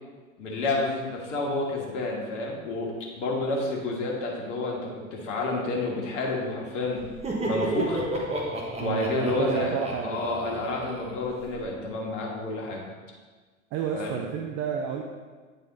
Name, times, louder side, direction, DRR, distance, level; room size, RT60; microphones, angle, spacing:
voice 1, 0.4-7.0 7.4-8.0 8.8-9.7 10.0-12.8 13.9-14.1, left 2 dB, 65° left, -1 dB, 1.7 m, -29 dB
Laughter, 7.0-11.7, right 2 dB, 15° right, 1.2 m, -32 dB
voice 2, 8.8-10.2 13.7-15.0, right 7 dB, 35° right, 2 dB, 0.6 m, -30 dB
9.0 x 4.1 x 4.0 m, 1.4 s
figure-of-eight pair, 85°, 40 cm